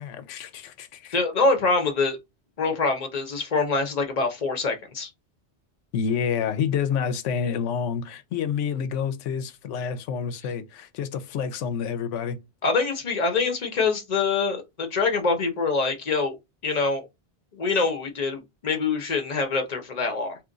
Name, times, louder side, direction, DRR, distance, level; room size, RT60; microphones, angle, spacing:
voice 1, 0.0-1.2 5.9-12.4, left 7 dB, 90° left, 0.9 m, -28 dB
voice 2, 1.1-2.2 2.6-5.1 12.6-16.4 16.6-17.0 17.5-20.4, left 4 dB, 40° left, 0.9 m, -25 dB
2.9 x 2.4 x 3.8 m
omnidirectional pair, 1.2 m